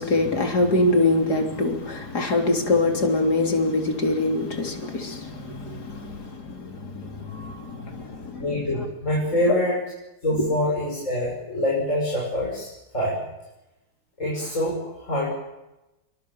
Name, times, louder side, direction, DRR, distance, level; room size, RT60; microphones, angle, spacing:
voice 1, 0.0-8.5, left 2 dB, 85° left, 3.9 m, -24 dB
voice 2, 8.4-9.8 10.2-13.2 14.2-15.3, left 1 dB, 50° left, 7.2 m, -25 dB
26.5 x 24.0 x 7.3 m
omnidirectional pair, 1.7 m